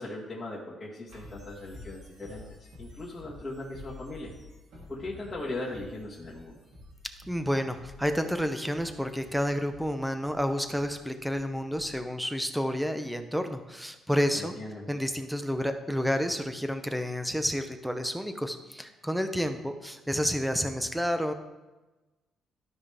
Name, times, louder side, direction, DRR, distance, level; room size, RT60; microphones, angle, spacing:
voice 1, 0.0-2.4 2.8-4.3 4.9-6.6 14.3-14.8, left 2 dB, 30° left, -9 dB, 1.8 m, -38 dB
sound 1, 1.1-12.0, left 2 dB, 75° right, 3.1 m, -50 dB
voice 2, 7.3-14.6 14.9-21.3, equal, ahead, 8 dB, 0.8 m, -30 dB
12.5 x 5.2 x 3.4 m, 1.1 s
cardioid pair, 90°, 0 cm